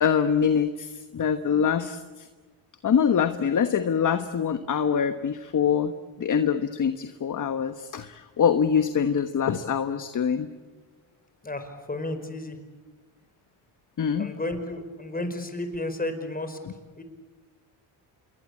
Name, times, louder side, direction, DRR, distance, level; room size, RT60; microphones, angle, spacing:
voice 1, 0.0-2.0 2.8-5.9 6.2-10.5 14.0-14.3, left 7 dB, 40° left, 9 dB, 1.3 m, -24 dB
voice 2, 11.4-12.6 14.2-16.6 17.0-17.1, left 2 dB, 20° left, 8 dB, 4.9 m, -32 dB
28.0 x 22.0 x 8.6 m, 1.4 s
cardioid pair, 85°, 47 cm